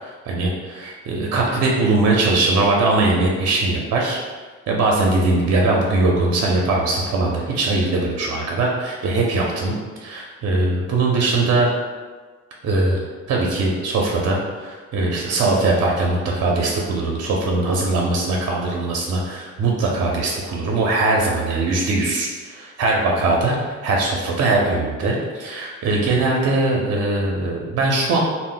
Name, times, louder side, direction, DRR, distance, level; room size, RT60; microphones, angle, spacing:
voice 1, 0.0-4.2 4.7-9.7 10.0-11.7 12.6-13.0 13.3-23.6 23.8-28.2, right 2 dB, 55° right, -1 dB, 0.5 m, -21 dB
2.0 x 2.0 x 3.7 m, 1.4 s
cardioid pair, 90°, 30 cm